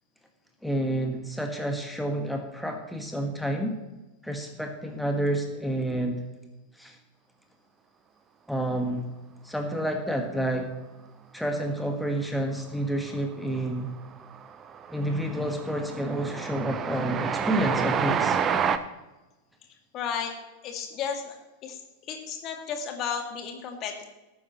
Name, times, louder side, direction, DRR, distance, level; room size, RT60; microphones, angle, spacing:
voice 1, 0.6-3.8 4.2-6.2 6.8-7.0 8.5-9.1 9.4-10.7 11.3-13.9 14.9-18.4, right 1 dB, ahead, 3 dB, 1.5 m, -29 dB
Train, 13.1-13.6 13.9-18.8, right 7 dB, 25° right, 0.7 m, -29 dB
voice 2, 19.9-20.3 20.6-21.4 21.6-21.8 22.1-24.1, left 7 dB, 35° left, 3 dB, 2.2 m, -33 dB
19.0 x 9.5 x 3.1 m, 1.1 s
figure-of-eight pair, 90°, 0 cm